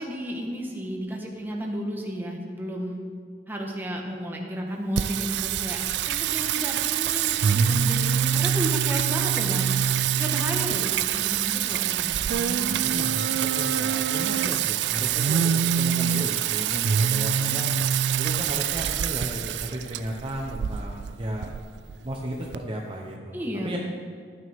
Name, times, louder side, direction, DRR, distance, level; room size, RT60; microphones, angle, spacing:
voice 1, 0.0-3.0 3.5-5.8 6.1-9.7 10.2-13.0 23.3-23.8, equal, 10° right, -1 dB, 1.4 m, -33 dB
Singing, 5.0-22.6, right 9 dB, 70° right, 0.3 m, -25 dB
voice 2, 12.8-17.7 18.2-21.5 22.0-23.8, right 1 dB, 30° right, -1 dB, 0.8 m, -34 dB
13.0 x 9.3 x 3.6 m, 2.1 s
head